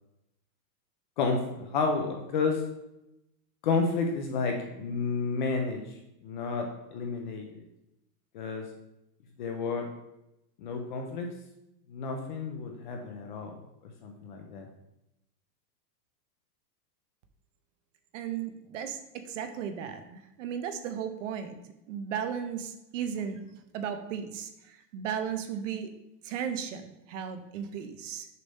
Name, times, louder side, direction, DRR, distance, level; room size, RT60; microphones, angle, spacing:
voice 1, 1.2-2.6 3.6-5.8 6.2-7.6 8.3-8.7 9.4-9.9 10.6-11.3 11.9-13.5 13.8-14.7, left 4 dB, 30° left, 3 dB, 0.4 m, -31 dB
voice 2, 18.1-21.6 21.9-25.9 26.2-28.3, right 8 dB, 50° right, 8 dB, 0.7 m, -35 dB
6.7 x 3.3 x 5.3 m, 0.88 s
supercardioid pair, 160°, 50 cm